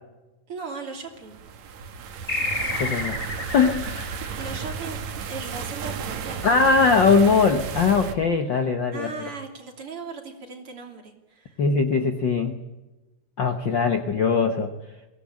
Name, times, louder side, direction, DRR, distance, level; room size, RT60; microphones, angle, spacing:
voice 1, 0.5-1.4 4.4-6.4 8.9-11.6, right 4 dB, 45° right, 3 dB, 3.8 m, -37 dB
sound 1, 1.3-8.1, right 6 dB, 65° right, 2.7 m, -33 dB
sound 2, 2.3-5.3, left 2 dB, 20° left, 2.4 m, -31 dB
voice 2, 2.8-3.2 3.5-4.1 6.4-9.1 11.6-12.6 13.4-14.7, left 5 dB, 55° left, 7 dB, 1.4 m, -21 dB
23.0 x 17.5 x 8.7 m, 1.1 s
omnidirectional pair, 3.5 m